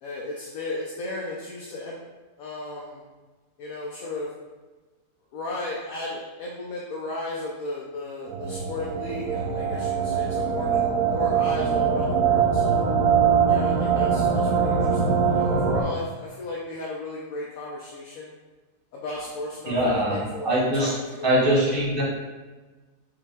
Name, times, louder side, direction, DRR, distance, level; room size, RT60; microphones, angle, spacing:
voice 1, 0.0-2.0 2.4-3.0 3.6-4.3 5.3-12.9 13.5-18.3 18.9-21.7, left 2 dB, 65° left, -3 dB, 1.0 m, -35 dB
sound 1, 8.3-15.8, right 6 dB, 70° right, 1.0 m, -22 dB
voice 2, 19.7-20.9 21.2-22.0, right 1 dB, 40° right, -4 dB, 1.1 m, -22 dB
4.7 x 2.9 x 3.6 m, 1.3 s
omnidirectional pair, 1.7 m